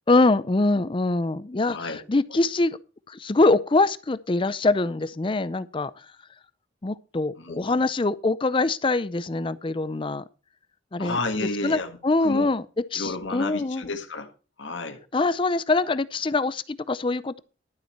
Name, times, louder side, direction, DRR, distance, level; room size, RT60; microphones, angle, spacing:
voice 1, 0.1-2.8 3.1-5.9 6.8-10.2 10.9-11.2 11.6-13.8 15.1-17.4, left 2 dB, 25° left, 0.5 m, -24 dB
voice 2, 7.4-7.8 11.0-12.5 12.9-14.3 14.6-15.0, left 3 dB, 65° left, 1.6 m, -31 dB
12.0 x 7.4 x 5.5 m
head